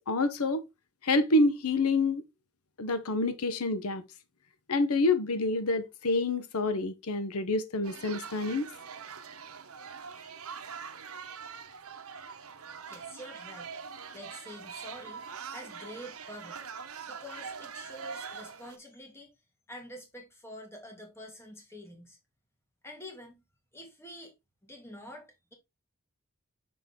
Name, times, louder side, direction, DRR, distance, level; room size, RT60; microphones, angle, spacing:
voice 1, 0.1-0.6 1.0-2.2 2.8-4.0 4.7-8.7, left 2 dB, 85° left, 0.9 m, -27 dB
sound 1, 7.8-18.8, right 6 dB, 80° right, 1.0 m, -43 dB
voice 2, 12.9-13.7 14.1-16.6 17.1-19.3 19.7-22.2 22.8-23.4 23.7-24.3 24.6-25.5, left 1 dB, 10° left, 1.8 m, -47 dB
6.0 x 5.2 x 3.6 m
head